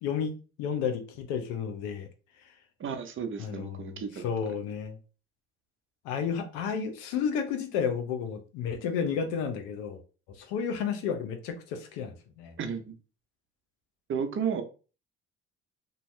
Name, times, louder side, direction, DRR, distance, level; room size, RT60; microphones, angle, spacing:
voice 1, 0.0-2.1 3.4-5.0 6.0-10.0 10.4-12.6, left 7 dB, 80° left, 0.7 m, -32 dB
voice 2, 2.8-4.3 12.6-12.9 14.1-14.6, right 6 dB, 40° right, 0.7 m, -33 dB
2.7 x 2.2 x 3.2 m
hypercardioid pair, 65°, 31 cm